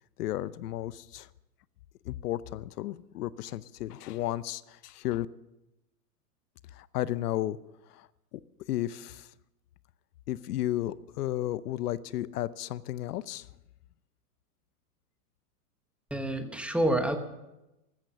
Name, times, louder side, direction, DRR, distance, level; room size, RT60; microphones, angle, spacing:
voice 1, 0.2-1.3 2.0-5.3 6.7-7.6 7.9-8.4 8.7-9.3 10.3-13.5, left 14 dB, 75° left, 18 dB, 0.7 m, -33 dB
voice 2, 16.1-17.2, right 1 dB, 5° right, 7 dB, 1.0 m, -28 dB
15.0 x 13.0 x 6.8 m, 0.95 s
supercardioid pair, 140°, 47 cm